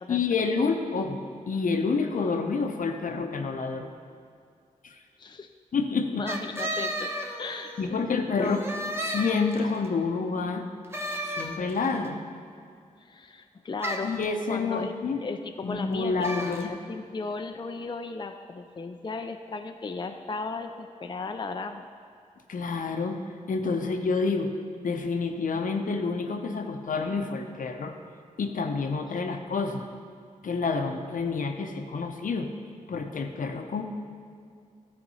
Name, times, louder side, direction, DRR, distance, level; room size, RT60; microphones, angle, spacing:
voice 1, 0.1-3.9 4.8-5.0 5.7-6.3 7.8-8.6 9.0-10.6 11.3-12.2 14.0-15.2 15.6-16.7 22.5-23.2 23.5-24.5 24.8-27.9 28.4-29.9 30.4-32.5 32.9-33.8, left 4 dB, 70° left, 5 dB, 0.8 m, -28 dB
voice 2, 5.2-5.5 6.2-7.1 7.4-8.8 13.0-14.2 14.5-14.9 15.2-21.9, left 4 dB, 35° left, 6 dB, 0.5 m, -36 dB
sound 1, 6.3-7.9 8.4-9.8 10.9-12.0 13.8-14.2 16.2-16.7, equal, 20° right, 1.0 m, -33 dB
11.5 x 4.3 x 5.5 m, 2.3 s
cardioid pair, 50°, 14 cm